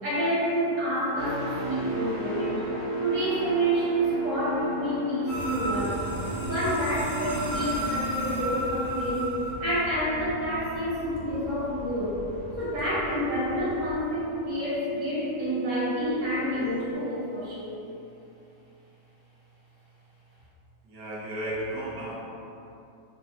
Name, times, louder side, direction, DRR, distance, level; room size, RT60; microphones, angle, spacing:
voice 1, 0.0-2.6 3.0-6.0 6.3-9.3 9.6-12.2 12.6-17.8, equal, 45° right, -10 dB, 1.8 m, -28 dB
sound 1, 1.2-9.0 9.4-9.7, equal, 10° right, 1.3 m, -38 dB
sound 2, 1.7-16.9, right 2 dB, 80° left, 1.7 m, -37 dB
sound 3, 5.3-13.9, right 1 dB, 55° left, 2.0 m, -35 dB
voice 2, 20.8-22.2, right 1 dB, 75° right, -7 dB, 1.6 m, -34 dB
5.4 x 3.1 x 2.9 m, 2.7 s
omnidirectional pair, 1.9 m